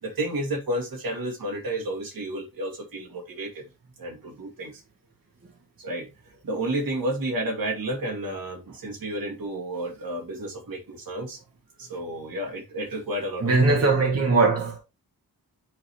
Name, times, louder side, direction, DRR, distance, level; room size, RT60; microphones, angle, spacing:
voice 1, 0.0-3.7 4.0-4.8 5.8-11.4 11.8-13.9, right 1 dB, 65° right, 2.2 m, -31 dB
voice 2, 13.4-14.8, right 3 dB, 40° right, 1.5 m, -20 dB
10.5 x 3.9 x 3.1 m
wide cardioid pair, 170°, 38 cm